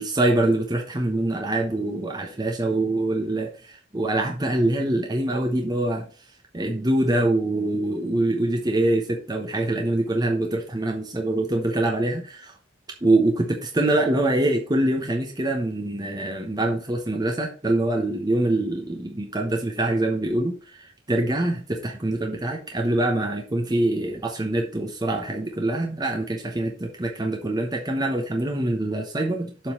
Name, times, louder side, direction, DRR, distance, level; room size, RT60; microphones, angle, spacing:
voice 1, 0.0-6.1 6.5-12.5 13.0-20.5 21.1-29.7, right 1 dB, 20° right, 1 dB, 0.9 m, -24 dB
7.1 x 3.9 x 6.4 m, 0.39 s
head